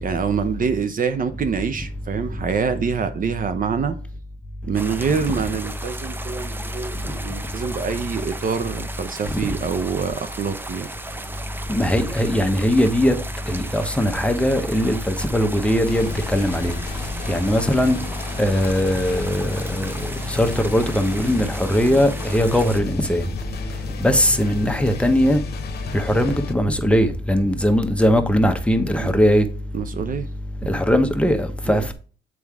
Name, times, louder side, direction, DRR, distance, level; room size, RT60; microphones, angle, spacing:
voice 1, 0.0-4.0 4.7-10.9 28.9-29.2 29.7-30.3 31.7-31.9, right 6 dB, 45° right, 0.7 m, -25 dB
sound 1, 4.7-22.8, right 2 dB, 10° right, 0.6 m, -36 dB
voice 2, 11.7-13.2 13.5-16.7 17.3-18.0 18.4-19.9 20.3-23.2 24.0-25.4 25.9-29.5 30.7-31.9, equal, 5° left, 0.9 m, -20 dB
sound 2, 15.9-26.5, left 6 dB, 55° left, 1.0 m, -34 dB
7.2 x 4.7 x 3.5 m
cardioid pair, 90°, 20 cm